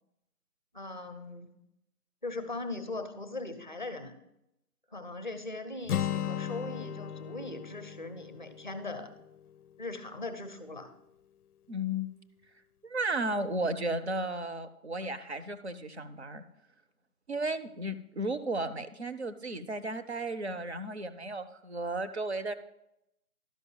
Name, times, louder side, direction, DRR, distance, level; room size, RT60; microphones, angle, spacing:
voice 1, 0.7-1.5 2.2-4.1 4.9-9.1 9.8-10.9, left 2 dB, 30° left, 9 dB, 0.6 m, -39 dB
Acoustic guitar, 5.9-9.8, left 9 dB, 75° left, 0.5 m, -37 dB
voice 2, 11.7-12.1 12.8-16.4 17.3-22.5, right 1 dB, 45° right, 10 dB, 0.6 m, -34 dB
11.5 x 5.4 x 5.4 m, 0.84 s
figure-of-eight pair, 165°, 46 cm